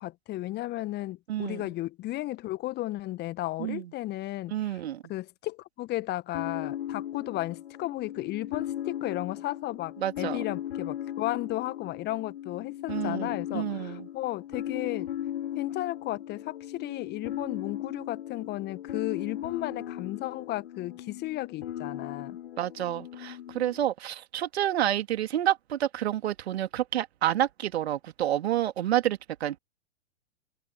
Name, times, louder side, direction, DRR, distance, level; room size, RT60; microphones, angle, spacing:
voice 1, 0.0-4.8 5.1-15.1 15.6-22.4, left 16 dB, 25° left, 1.6 m, -34 dB
voice 2, 1.3-1.6 3.6-3.9 4.5-5.0 10.0-10.4 12.9-14.1 22.6-29.6, right 12 dB, 55° right, 2.6 m, -29 dB
sound 1, 6.3-23.8, left 11 dB, 55° left, 4.3 m, -37 dB
figure-of-eight pair, 105°, 38 cm